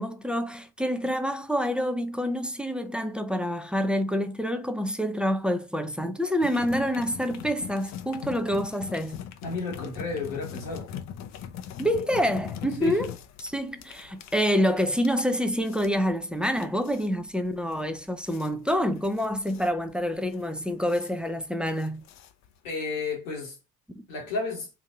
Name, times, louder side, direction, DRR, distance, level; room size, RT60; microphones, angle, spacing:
voice 1, 0.0-9.2 11.8-13.1 13.4-22.0 23.9-24.1, equal, 5° right, 0.4 m, -27 dB
sound 1, 6.4-22.7, left 9 dB, 45° left, 0.6 m, -41 dB
voice 2, 9.4-10.9 12.8-13.0 22.6-23.6 24.1-24.7, left 4 dB, 75° left, 1.4 m, -32 dB
3.9 x 2.6 x 2.4 m
figure-of-eight pair, 45°, 40 cm